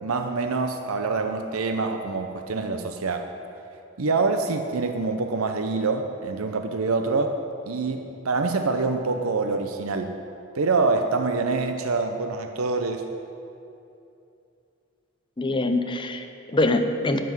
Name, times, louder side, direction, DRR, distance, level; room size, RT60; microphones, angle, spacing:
voice 1, 0.0-3.3 4.0-7.4 7.7-10.1 10.5-13.1, right 3 dB, 85° right, 6 dB, 0.7 m, -25 dB
voice 2, 15.4-17.2, left 2 dB, 25° left, 6 dB, 0.7 m, -24 dB
11.5 x 6.1 x 9.3 m, 2.7 s
head